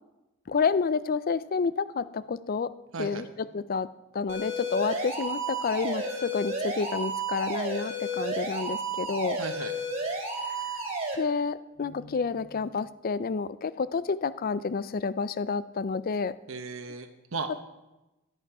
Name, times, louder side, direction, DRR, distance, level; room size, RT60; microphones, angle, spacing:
voice 1, 0.5-2.7 3.0-3.9 4.1-9.4 10.5-10.7 11.2-16.3, left 5 dB, 45° left, 16 dB, 0.4 m, -29 dB
voice 2, 2.9-3.3 9.4-9.7 16.5-17.6, right 4 dB, 75° right, 6 dB, 1.0 m, -36 dB
sound 1, 4.3-11.1, right 2 dB, 35° right, 4.1 m, -32 dB
16.5 x 11.0 x 4.8 m, 1.0 s
head